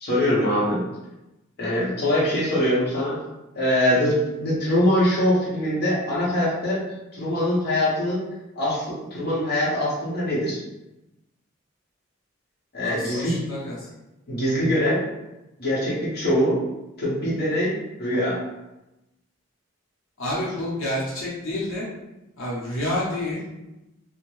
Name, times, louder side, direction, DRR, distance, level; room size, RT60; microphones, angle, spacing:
voice 1, 0.0-0.8 1.6-3.2 3.5-6.9 7.1-8.2 8.5-10.6 12.7-13.4 14.3-15.0 15.6-16.6 17.0-17.7 18.0-18.4, left 1 dB, 50° left, -7 dB, 0.9 m, -23 dB
voice 2, 12.8-13.9 20.2-21.9 22.4-23.4, left 1 dB, 80° left, -6 dB, 0.7 m, -29 dB
2.5 x 2.1 x 3.1 m, 0.97 s
head